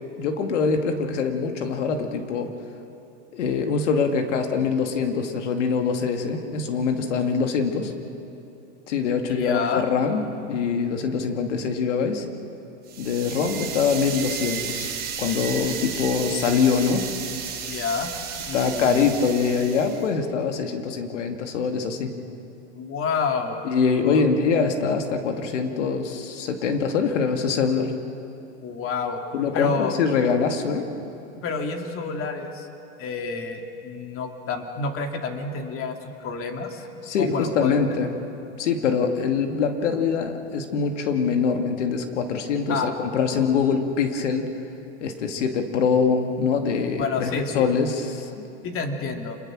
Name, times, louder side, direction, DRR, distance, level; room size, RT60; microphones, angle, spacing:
voice 1, 0.2-2.5 3.3-7.9 8.9-12.3 13.0-14.9 15.2-17.1 18.5-22.1 23.6-27.9 29.3-30.9 37.0-38.1 38.6-44.5 45.0-48.5, left 5 dB, 85° left, 5 dB, 2.3 m, -24 dB
voice 2, 9.3-9.9 17.7-18.1 18.4-19.3 22.7-23.6 24.0-24.2 28.6-29.2 29.5-30.0 31.4-32.7 33.0-36.9 37.2-38.0 42.7-42.9 43.2-43.8 47.0-47.7 48.6-49.4, left 5 dB, 40° left, 4 dB, 2.6 m, -29 dB
sound 1, 12.9-20.1, right 7 dB, 30° right, 4.5 m, -33 dB
27.0 x 21.5 x 6.2 m, 2.8 s
hypercardioid pair, 110°, 35 cm